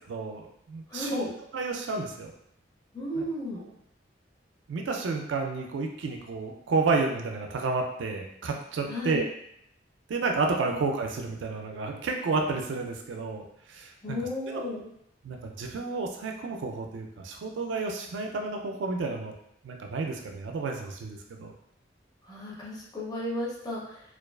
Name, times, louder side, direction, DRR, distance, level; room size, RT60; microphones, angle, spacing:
voice 1, 0.1-1.3 1.5-2.3 3.2-3.3 4.7-9.3 10.1-14.2 14.5-14.7 15.2-19.3 19.6-21.5, right 3 dB, 80° right, 2 dB, 0.4 m, -31 dB
voice 2, 0.9-1.3 2.9-3.6 8.9-9.3 14.0-14.9 22.3-24.0, left 1 dB, 20° left, -5 dB, 0.5 m, -34 dB
2.3 x 2.3 x 2.3 m, 0.73 s
head